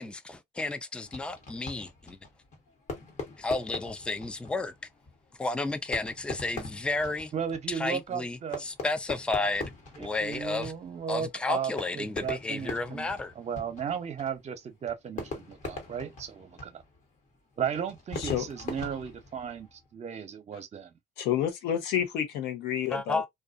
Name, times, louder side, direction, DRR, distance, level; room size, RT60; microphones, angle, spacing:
voice 1, 0.0-2.2 3.4-4.7 5.4-7.3 7.7-9.7 10.0-10.7 11.1-13.3 22.9-23.3, left 3 dB, 5° left, 0.4 m, -32 dB
Fireworks, 1.1-19.9, left 3 dB, 45° left, 1.2 m, -42 dB
voice 2, 7.3-8.6 10.0-16.8 17.6-20.9, right 8 dB, 40° right, 0.7 m, -35 dB
voice 3, 18.2-18.5 21.2-23.2, left 10 dB, 90° left, 0.8 m, -29 dB
2.4 x 2.3 x 2.4 m
cardioid pair, 110°, 17 cm